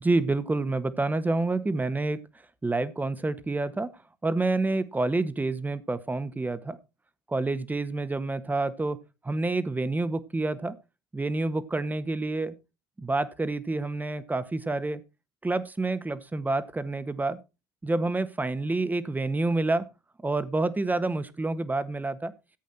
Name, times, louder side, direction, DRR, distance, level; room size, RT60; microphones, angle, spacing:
voice 1, 0.0-2.2 2.6-3.9 4.2-6.8 7.3-9.0 9.2-10.8 11.1-12.5 13.0-15.0 15.4-17.4 17.8-19.9 20.2-22.3, right 2 dB, 15° right, 13 dB, 1.5 m, -28 dB
14.5 x 8.3 x 4.3 m, 0.28 s
hypercardioid pair, 70°, 12 cm